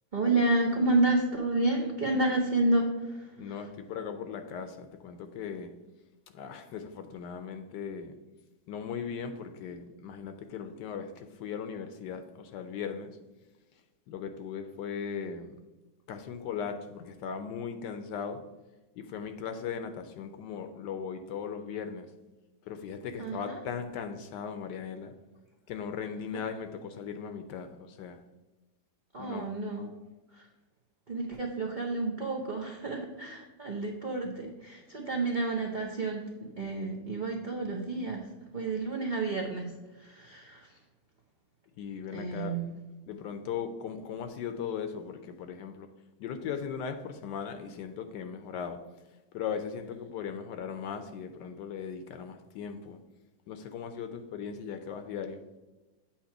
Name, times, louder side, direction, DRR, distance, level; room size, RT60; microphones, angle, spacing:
voice 1, 0.1-3.3 23.2-23.6 26.3-26.4 29.1-29.9 30.3-30.5 31.1-38.3 38.5-40.8 42.1-42.7, right 2 dB, 65° right, -2 dB, 0.4 m, -30 dB
voice 2, 3.4-5.7 6.3-8.2 8.7-13.1 14.1-15.6 16.1-18.4 19.0-22.1 22.7-25.1 25.7-28.2 29.2-29.5 41.8-42.6 43.1-45.9 46.2-48.8 49.3-53.0 53.5-55.4, left 7 dB, 75° left, 8 dB, 1.2 m, -38 dB
8.5 x 3.0 x 5.8 m, 1.1 s
omnidirectional pair, 2.0 m